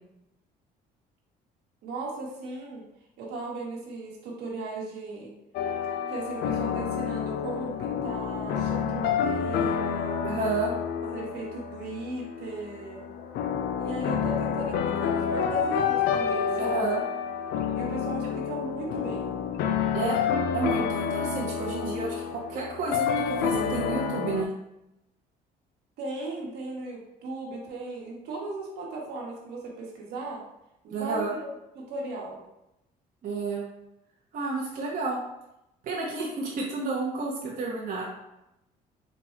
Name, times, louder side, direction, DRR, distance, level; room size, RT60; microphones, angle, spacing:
voice 1, 1.8-2.8 3.2-5.3 6.1-10.2 11.1-13.1 13.8-17.0 17.7-19.4 26.0-30.4 30.8-31.5 31.7-32.4, right 2 dB, 75° right, -2 dB, 1.2 m, -37 dB
sound 1, 5.5-24.4, left 7 dB, 75° left, 0.4 m, -29 dB
voice 2, 10.2-10.7 16.6-17.0 19.9-20.1 20.5-24.5 30.9-31.3 33.2-33.6 34.3-35.2 35.8-38.0, right 3 dB, 55° right, -3 dB, 0.8 m, -30 dB
4.1 x 2.3 x 4.4 m, 0.88 s
cardioid pair, 110°, 17 cm